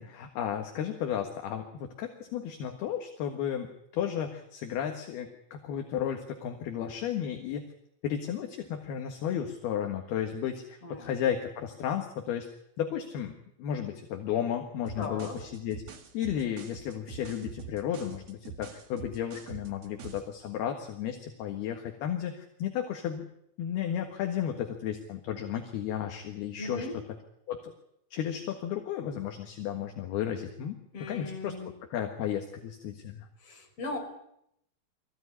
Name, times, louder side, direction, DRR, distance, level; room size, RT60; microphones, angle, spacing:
voice 1, 0.0-7.7 8.0-12.5 12.8-15.8 16.1-23.2 23.6-26.9 27.5-27.7 28.1-31.5 31.9-33.3, left 9 dB, 65° left, 4 dB, 3.2 m, -33 dB
voice 2, 10.8-11.1 15.0-15.4 26.6-27.0 30.9-31.7 33.4-34.0, left 2 dB, 30° left, 1 dB, 5.5 m, -38 dB
sound 1, 14.8-20.3, right 6 dB, 55° right, 2.0 m, -45 dB
23.5 x 16.0 x 9.8 m, 0.77 s
omnidirectional pair, 5.7 m